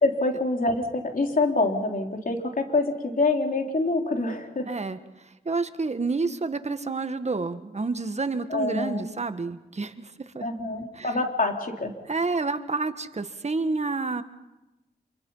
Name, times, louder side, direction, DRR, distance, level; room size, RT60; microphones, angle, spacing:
voice 1, 0.0-4.7 8.5-9.1 10.4-11.9, left 2 dB, 50° left, 3 dB, 3.6 m, -26 dB
voice 2, 4.7-5.0 5.4-10.5 10.9-11.1 12.1-14.2, right 3 dB, 40° right, 10 dB, 1.6 m, -29 dB
27.0 x 24.0 x 5.7 m, 1.0 s
cardioid pair, 65°, 18 cm